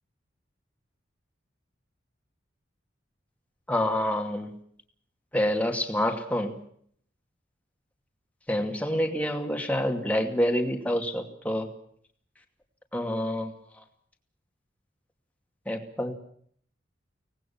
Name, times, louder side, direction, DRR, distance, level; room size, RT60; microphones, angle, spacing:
voice 1, 3.7-4.5 5.3-6.6 8.5-11.7 12.9-13.5 15.7-16.1, equal, 10° left, 3 dB, 2.5 m, -27 dB
24.5 x 19.0 x 7.2 m, 0.63 s
head